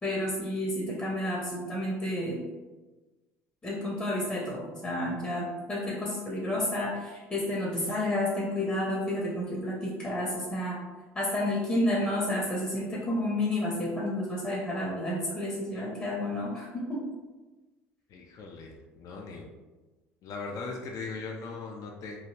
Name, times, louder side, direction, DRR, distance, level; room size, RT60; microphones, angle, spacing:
voice 1, 0.0-2.4 3.6-10.8 11.1-17.0, left 1 dB, 20° left, -4 dB, 0.7 m, -30 dB
voice 2, 18.1-19.5 20.2-22.2, left 4 dB, 50° left, 0 dB, 0.5 m, -39 dB
3.0 x 2.4 x 2.8 m, 1.2 s
hypercardioid pair, 70°, 7 cm